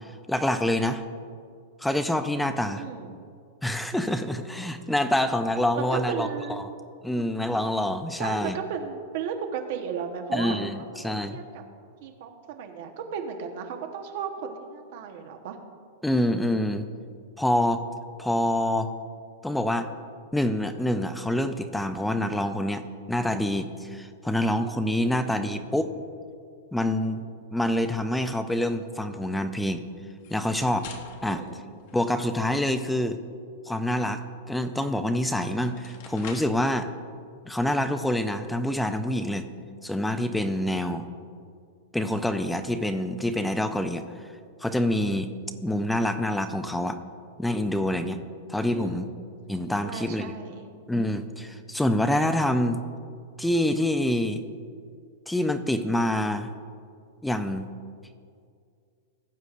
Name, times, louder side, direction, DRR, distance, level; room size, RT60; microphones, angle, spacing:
voice 1, 0.3-1.0 1.8-2.8 3.6-6.3 6.6-6.7 7.0-8.6 10.3-11.4 16.0-16.9 17.4-17.8 18.2-18.9 19.4-19.9 20.3-25.9 26.7-27.2 27.5-29.8 30.3-30.9 31.2-31.4 31.9-33.2 33.7-36.9 37.5-39.5 39.8-41.1 41.9-44.0 44.6-45.3 45.6-47.0 47.4-48.2 48.5-49.1 49.5-50.4 50.9-52.8 53.4-54.4 55.3-56.5 57.2-57.7, left 1 dB, ahead, 8 dB, 0.4 m, -26 dB
voice 2, 2.7-3.1 5.8-6.6 8.2-10.6 10.9-11.6 12.0-15.6 25.1-25.6 31.3-31.6 48.7-49.1 49.8-50.7, right 7 dB, 45° right, 4 dB, 1.0 m, -35 dB
sound 1, 30.1-32.5 34.9-35.0 35.5-36.7, left 6 dB, 40° left, 0.8 m, -46 dB
17.5 x 7.9 x 2.5 m, 2.3 s
supercardioid pair, 175°, 0 cm